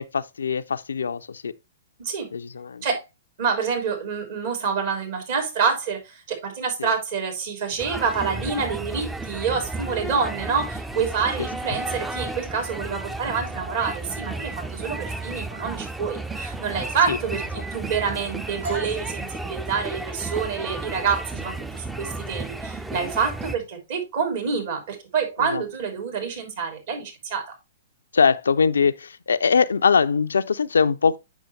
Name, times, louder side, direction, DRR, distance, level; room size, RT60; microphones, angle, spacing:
voice 1, 0.0-1.5 2.3-2.8 6.8-6.9 10.0-10.1 17.1-17.2 25.4-25.6 28.1-31.2, left 5 dB, 75° left, 0.4 m, -22 dB
voice 2, 3.4-17.4 17.7-27.5, right 6 dB, 55° right, 3.4 m, -27 dB
sound 1, 7.8-23.6, right 2 dB, 5° right, 0.5 m, -33 dB
sound 2, 18.6-26.3, right 1 dB, 75° right, 4.5 m, -43 dB
8.1 x 6.2 x 3.2 m
figure-of-eight pair, 115°, 0 cm